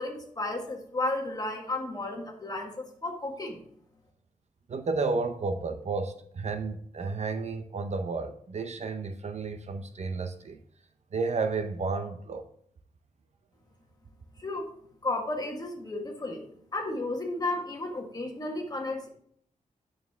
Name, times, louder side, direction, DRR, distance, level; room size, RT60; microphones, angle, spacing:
voice 1, 0.0-3.6 14.4-14.7 15.0-19.1, left 2 dB, 30° left, 1.5 m, -33 dB
voice 2, 4.7-10.6 11.1-12.4, right 4 dB, 55° right, 0.6 m, -32 dB
9.1 x 6.4 x 3.5 m
wide cardioid pair, 175°, 14 cm